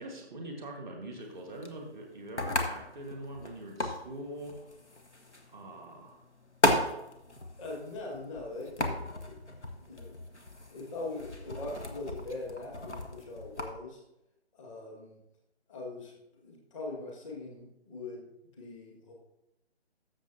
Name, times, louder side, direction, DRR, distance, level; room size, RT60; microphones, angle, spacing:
voice 1, 0.0-4.6 5.5-6.2, right 1 dB, 5° left, -2 dB, 0.5 m, -43 dB
sound 1, 1.2-13.7, left 1 dB, 85° left, 1.3 m, -36 dB
voice 2, 7.6-10.2 10.7-14.0 14.5-15.2 15.7-19.1, left 2 dB, 30° left, -1 dB, 1.8 m, -42 dB
13.5 x 6.9 x 2.7 m, 0.86 s
figure-of-eight pair, 140°, 34 cm